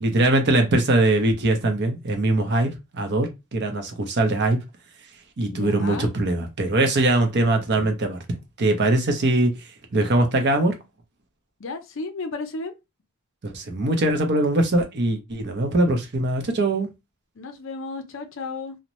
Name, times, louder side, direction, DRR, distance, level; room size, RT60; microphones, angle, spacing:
voice 1, 0.0-4.6 5.4-9.5 9.9-10.7 13.4-16.9, right 2 dB, 50° right, 0.6 m, -22 dB
voice 2, 5.5-6.1 11.6-12.7 17.4-18.8, left 3 dB, 60° left, 0.5 m, -33 dB
2.6 x 2.1 x 3.0 m
head